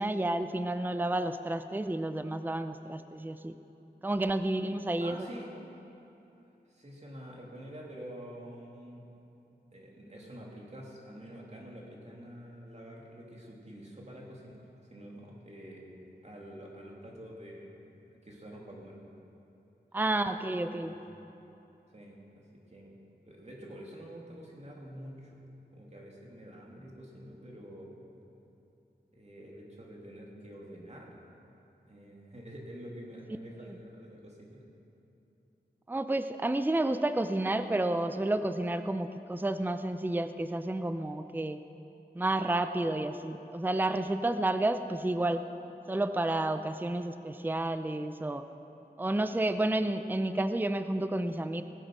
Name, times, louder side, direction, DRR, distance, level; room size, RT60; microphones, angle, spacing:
voice 1, 0.0-3.5 4.0-5.3 19.9-21.0 35.9-41.6 42.2-45.5 45.9-48.4 49.0-51.6, right 1 dB, 10° right, 9 dB, 0.5 m, -30 dB
voice 2, 5.0-5.5 6.7-9.0 9.7-17.8 18.2-19.0 20.8-21.0 21.9-22.9 23.2-25.4 25.7-28.0 29.1-31.1 31.9-34.6, equal, 40° right, -3 dB, 2.8 m, -47 dB
19.5 x 8.0 x 6.1 m, 2.9 s
wide cardioid pair, 65°, 18 cm